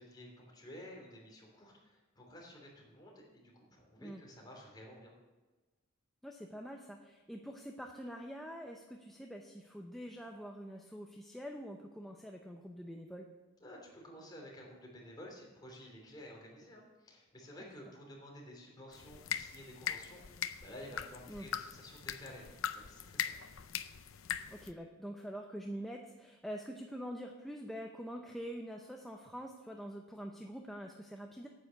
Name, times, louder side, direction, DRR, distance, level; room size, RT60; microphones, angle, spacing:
voice 1, 0.0-5.1 13.6-22.5 22.7-23.3, equal, 20° left, -2 dB, 3.2 m, -52 dB
voice 2, 6.2-13.3 17.6-17.7 21.3-21.5 24.5-31.5, equal, ahead, 1 dB, 0.7 m, -45 dB
sound 1, 18.9-24.7, left 9 dB, 85° left, 0.6 m, -41 dB
9.3 x 9.0 x 6.9 m, 1.2 s
head